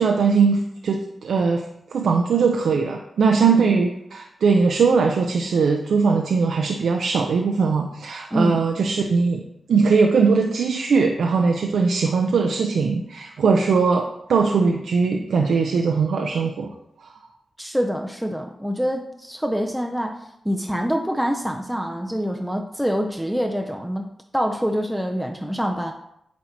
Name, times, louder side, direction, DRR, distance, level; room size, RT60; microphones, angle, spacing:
voice 1, 0.0-1.6 1.9-9.4 9.7-16.7 17.0-17.1, right 5 dB, 85° right, 2 dB, 0.5 m, -20 dB
voice 2, 8.3-8.6 17.6-25.9, equal, ahead, 3 dB, 0.5 m, -26 dB
8.4 x 2.8 x 4.4 m, 0.79 s
cardioid pair, 85°, 0 cm